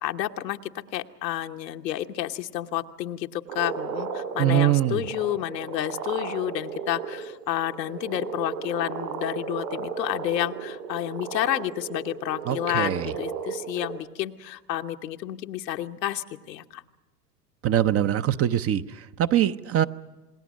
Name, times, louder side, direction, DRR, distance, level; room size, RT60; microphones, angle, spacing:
voice 1, 0.0-16.8, left 13 dB, 80° left, 6 dB, 1.2 m, -30 dB
sound 1, 3.5-13.9, right 6 dB, 65° right, 6.6 m, -35 dB
voice 2, 4.4-5.0 12.5-13.1 17.6-19.8, right 12 dB, 30° right, 12 dB, 0.7 m, -23 dB
27.5 x 20.5 x 6.3 m, 1.2 s
hypercardioid pair, 95°, 49 cm